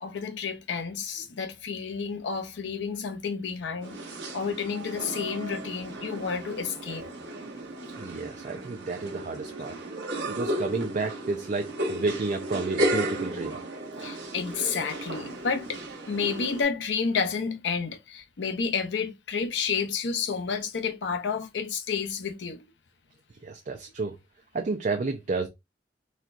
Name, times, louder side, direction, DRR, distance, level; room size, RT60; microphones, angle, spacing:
voice 1, 0.0-7.1 14.0-15.8 16.1-22.6, left 5 dB, 85° left, 0.6 m, -30 dB
sound 1, 3.8-16.6, right 1 dB, 70° right, 1.0 m, -34 dB
voice 2, 8.0-9.8 10.3-13.6 23.4-24.2 24.5-25.5, right 3 dB, 45° right, 0.4 m, -31 dB
4.2 x 2.2 x 2.5 m
head